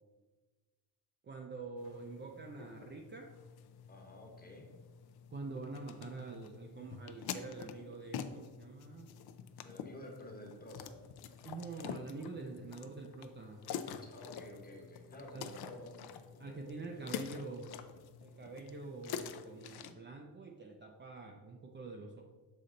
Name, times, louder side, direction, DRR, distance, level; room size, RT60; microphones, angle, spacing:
voice 1, 1.2-3.3 5.3-9.1 11.4-13.6 15.3-15.5 16.4-17.8 18.2-22.2, right 3 dB, 30° right, 1 dB, 0.4 m, -46 dB
sound 1, 1.8-19.9, left 8 dB, 75° left, 0.5 m, -47 dB
voice 2, 3.9-4.7 9.6-11.0 14.0-16.0 16.3-17.4, left 1 dB, 25° left, 1 dB, 1.1 m, -52 dB
6.7 x 4.1 x 3.8 m, 1.3 s
wide cardioid pair, 155°, 38 cm